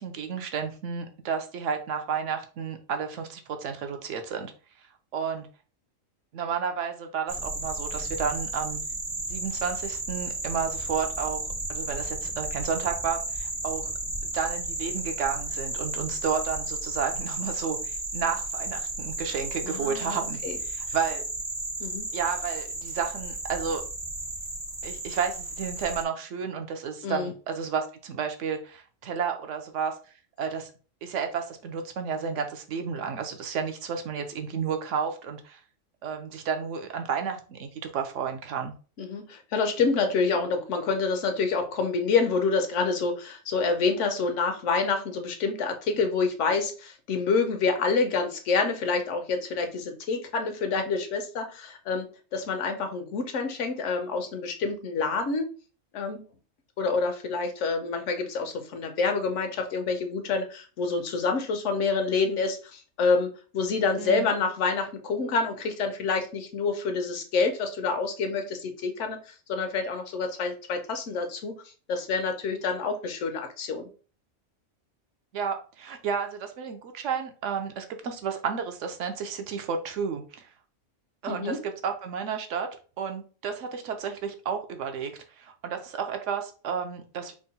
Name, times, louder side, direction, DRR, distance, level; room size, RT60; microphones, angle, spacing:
voice 1, 0.0-4.5 5.1-5.5 6.3-8.8 9.3-11.4 11.7-13.9 14.2-20.4 20.6-21.2 22.1-23.8 24.8-29.9 30.4-30.7 31.0-35.6 36.0-38.7 64.0-64.3 75.3-80.5 81.2-82.7 83.0-87.3, right 6 dB, 75° right, 6 dB, 0.9 m, -31 dB
sound 1, 7.3-26.0, right 2 dB, 30° right, 0.3 m, -33 dB
voice 2, 19.6-20.6 21.8-22.1 27.0-27.3 39.0-52.1 52.3-55.5 55.9-56.2 56.8-71.6 71.9-73.9 81.3-81.6, left 4 dB, 70° left, 6 dB, 1.0 m, -27 dB
3.6 x 2.2 x 4.0 m, 0.37 s
omnidirectional pair, 1.4 m